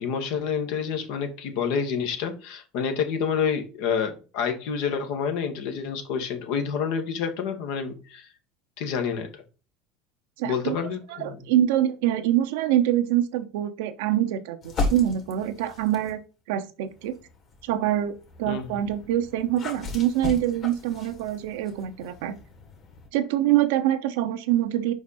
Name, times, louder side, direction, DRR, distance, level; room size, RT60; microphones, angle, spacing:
voice 1, 0.0-8.3 8.8-9.3 10.4-11.4 18.5-18.8, left 6 dB, 70° left, 1.4 m, -28 dB
voice 2, 10.4-10.7 11.1-16.2 16.5-17.2 17.6-22.3 23.1-24.9, right 12 dB, 75° right, 0.7 m, -25 dB
sound 1, 14.6-16.2 16.9-23.1, left 3 dB, 45° left, 2.3 m, -36 dB
5.0 x 5.0 x 4.1 m
hypercardioid pair, 90°, 0 cm